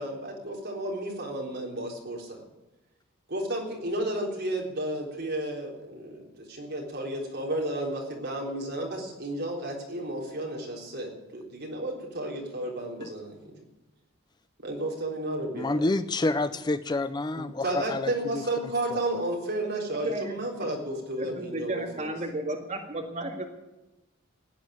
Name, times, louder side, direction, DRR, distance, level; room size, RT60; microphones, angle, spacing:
voice 1, 0.0-2.4 3.3-13.5 14.6-15.8 17.4-22.1, right 1 dB, 55° right, -1 dB, 3.8 m, -32 dB
voice 2, 15.5-18.4 18.9-19.0, left 2 dB, 20° left, 12 dB, 0.4 m, -28 dB
voice 3, 21.5-23.5, right 1 dB, 35° right, 1 dB, 2.0 m, -33 dB
15.5 x 9.4 x 9.4 m, 1.0 s
head